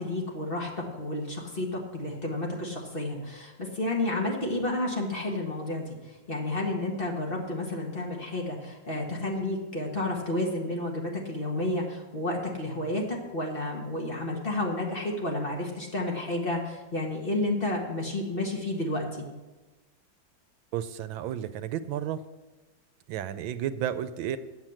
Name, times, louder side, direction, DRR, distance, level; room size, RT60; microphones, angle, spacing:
voice 1, 0.0-19.2, left 1 dB, 30° left, -1 dB, 1.6 m, -31 dB
voice 2, 20.7-22.2 23.1-24.4, right 10 dB, 80° right, 13 dB, 1.3 m, -32 dB
8.7 x 7.5 x 7.7 m, 1.2 s
omnidirectional pair, 2.1 m